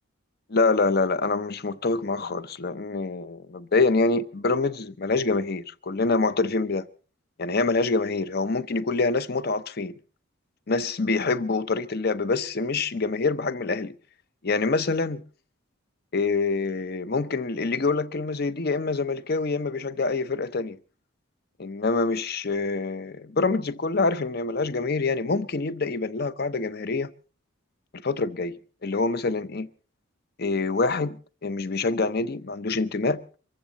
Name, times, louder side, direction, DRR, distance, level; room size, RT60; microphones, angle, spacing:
voice 1, 0.5-6.9 7.4-9.9 10.7-13.9 14.4-15.2 16.1-20.8 21.6-27.1 27.9-29.7 30.4-33.2, left 3 dB, 50° left, 0.7 m, -26 dB
24.0 x 14.5 x 4.0 m
head